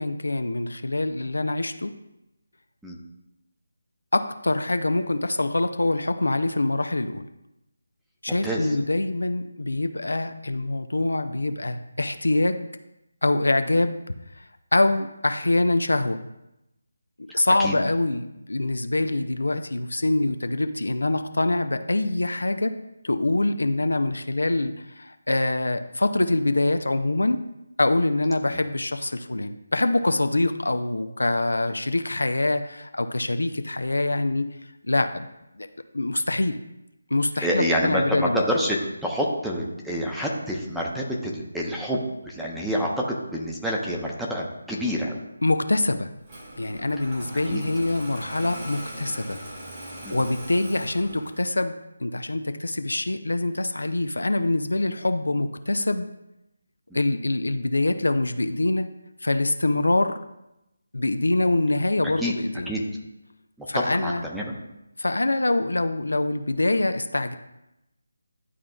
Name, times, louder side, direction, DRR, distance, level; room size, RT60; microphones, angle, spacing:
voice 1, 0.0-1.9 4.1-7.2 8.2-12.7 13.2-14.0 14.4-14.5 14.7-16.2 17.2-22.8 23.0-27.4 27.8-34.5 34.8-35.3 35.6-35.7 35.9-36.6 37.1-38.4 45.4-46.1 46.5-49.4 49.8-51.7 52.0-56.1 56.9-58.9 59.2-60.2 60.9-62.7 63.7-64.3 65.0-67.4, left 2 dB, 80° left, 9 dB, 0.5 m, -24 dB
voice 2, 8.3-8.7 17.3-17.7 37.4-45.2 47.5-47.6 50.0-50.2 62.2-62.3 62.7-62.8 63.6-64.6, equal, ahead, -4 dB, 0.7 m, -28 dB
Engine starting, 46.2-51.6, right 1 dB, 30° right, 2.0 m, -40 dB
11.0 x 3.6 x 2.3 m, 0.90 s
figure-of-eight pair, 160°, 0 cm